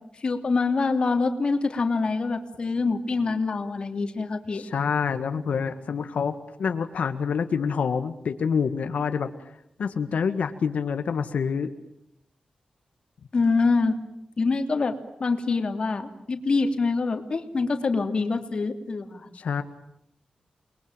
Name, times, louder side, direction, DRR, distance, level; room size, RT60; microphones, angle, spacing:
voice 1, 0.2-4.6 13.3-13.9 14.4-19.3, left 4 dB, 45° left, 6 dB, 2.9 m, -25 dB
voice 2, 4.5-9.3 9.8-11.7 19.3-19.6, left 6 dB, 90° left, 8 dB, 1.7 m, -27 dB
30.0 x 22.0 x 9.0 m, 0.78 s
wide cardioid pair, 155°, 2 cm